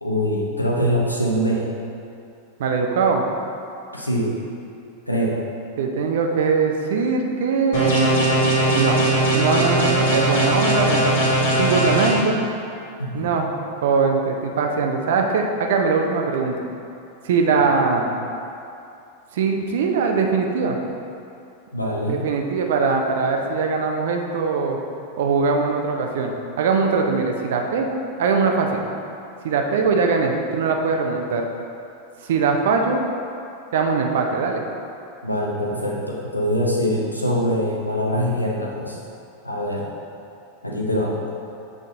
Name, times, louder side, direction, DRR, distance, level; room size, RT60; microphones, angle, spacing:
voice 1, 0.0-1.6 3.9-4.3 5.1-5.4 13.0-13.3 21.7-22.2 35.2-39.0 39.4-39.9 40.6-41.1, equal, 85° left, -2 dB, 0.9 m, -23 dB
voice 2, 2.6-3.2 5.8-8.3 8.7-9.0 9.3-11.3 11.5-12.5 13.1-13.5 13.8-16.6 17.2-18.2 19.3-20.8 22.1-24.8 25.2-28.8 29.4-31.4 32.2-33.0 33.7-34.6, right 4 dB, 55° right, 2 dB, 0.6 m, -21 dB
sound 1, 7.7-12.1, right 1 dB, 55° left, 1.4 m, -19 dB
7.3 x 3.9 x 3.8 m, 2.6 s
figure-of-eight pair, 90°, 0 cm